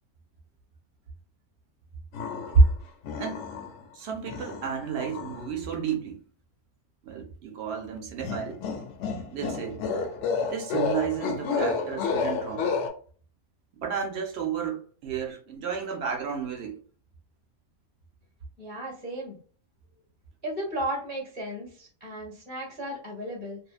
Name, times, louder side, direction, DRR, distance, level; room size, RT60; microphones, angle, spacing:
sound 1, 2.1-2.7 3.0-3.8 4.3-5.4 8.2-12.9, left 5 dB, 65° left, 0.7 m, -31 dB
voice 1, 3.9-6.2 7.0-8.6 9.3-9.8 10.4-12.8 13.7-16.8, right 4 dB, 60° right, 0.7 m, -29 dB
voice 2, 18.6-19.4 20.4-23.6, right 1 dB, 10° left, 0.8 m, -35 dB
2.7 x 2.1 x 2.3 m
omnidirectional pair, 1.6 m